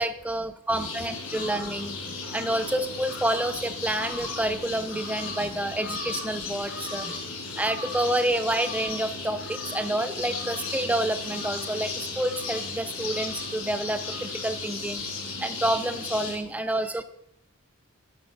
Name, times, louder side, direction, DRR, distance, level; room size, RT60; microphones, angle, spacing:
voice 1, 0.0-15.0 15.4-17.0, right 1 dB, 5° right, 8 dB, 0.5 m, -29 dB
sound 1, 0.7-16.3, left 3 dB, 65° left, 3.8 m, -35 dB
10.0 x 7.5 x 5.5 m, 0.76 s
head